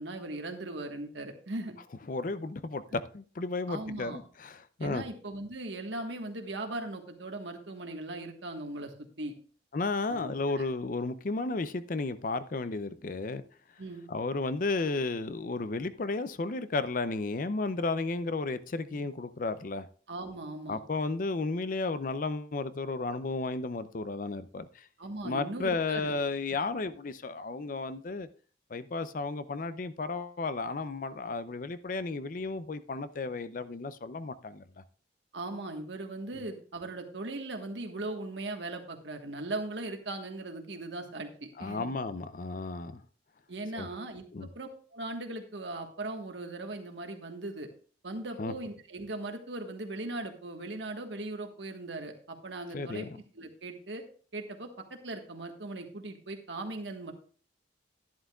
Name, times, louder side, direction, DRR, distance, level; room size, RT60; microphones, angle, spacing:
voice 1, 0.0-1.7 3.7-4.2 4.8-9.3 10.1-10.7 13.8-14.1 18.9-19.0 20.1-20.8 25.0-26.1 35.3-41.9 43.5-44.2 44.5-47.7 48.0-53.0 53.3-54.0 54.3-57.1, right 2 dB, 85° right, 4 dB, 1.5 m, -39 dB
voice 2, 2.1-5.0 9.7-13.4 14.1-19.9 20.7-24.9 25.2-28.3 28.7-34.6 41.6-43.0 43.8-43.9 44.3-44.5 48.4-48.5 52.7-53.2, left 3 dB, 50° left, 13 dB, 0.5 m, -33 dB
11.5 x 10.5 x 2.4 m, 0.42 s
head